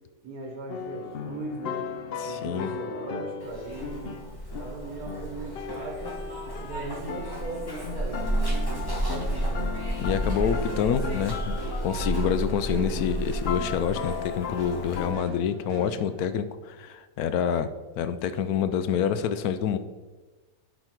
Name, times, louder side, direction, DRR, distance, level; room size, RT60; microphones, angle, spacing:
voice 1, 0.2-1.8 2.2-4.2 4.6-6.2 6.6-10.1, right 2 dB, 80° right, 0 dB, 1.7 m, -38 dB
sound 1, 0.7-15.2, left 6 dB, 60° left, 0.6 m, -37 dB
voice 2, 2.2-2.7 10.0-11.5 11.8-19.8, left 8 dB, 90° left, 11 dB, 1.1 m, -27 dB
Zipper (clothing), 3.4-15.1, right 1 dB, 15° left, 1.3 m, -32 dB
sound 2, 10.3-16.3, right 2 dB, 45° right, 0.3 m, -41 dB
10.5 x 4.3 x 4.5 m, 1.3 s
omnidirectional pair, 1.5 m